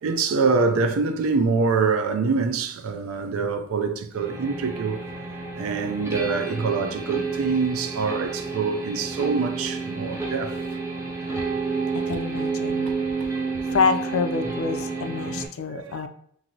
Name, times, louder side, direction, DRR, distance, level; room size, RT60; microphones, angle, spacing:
voice 1, 0.0-5.0 5.6-10.6 12.1-12.2 12.9-13.0 15.3-15.4 15.7-16.1, right 4 dB, 90° right, 0.4 m, -25 dB
sound 1, 4.1-15.5, right 4 dB, 15° right, 0.5 m, -30 dB
voice 2, 11.9-13.0 13.7-16.1, left 5 dB, 75° left, 0.4 m, -27 dB
3.0 x 2.6 x 2.7 m
head